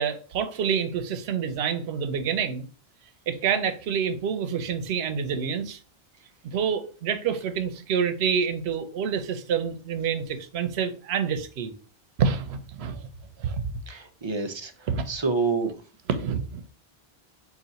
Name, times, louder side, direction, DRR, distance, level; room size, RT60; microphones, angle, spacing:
voice 1, 0.0-2.7 3.3-5.8 6.5-11.7 12.2-13.1 13.4-13.6 14.9-15.0 16.1-16.7, right 7 dB, 90° right, 0.9 m, -27 dB
voice 2, 13.9-15.7, right 4 dB, 35° right, 0.5 m, -28 dB
4.0 x 2.4 x 4.0 m
omnidirectional pair, 1.1 m